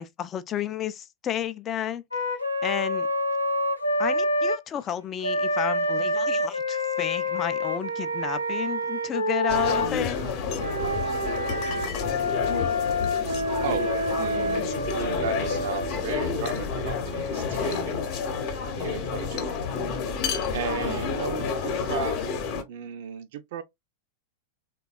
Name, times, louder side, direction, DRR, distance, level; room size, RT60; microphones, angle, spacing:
voice 1, 0.0-2.0 2.6-3.1 4.0-10.2, left 10 dB, 25° left, 0.4 m, -32 dB
Wind instrument woodwind instrument, 2.1-4.6 5.2-9.9 10.5-15.9, left 1 dB, 85° left, 0.6 m, -27 dB
sound 1, 9.5-22.6, left 5 dB, 45° left, 0.8 m, -30 dB
voice 2, 14.2-18.0 18.7-19.6 20.5-22.2 22.7-23.6, right 6 dB, 55° right, 0.4 m, -35 dB
3.4 x 2.2 x 2.4 m
figure-of-eight pair, 90°, 0 cm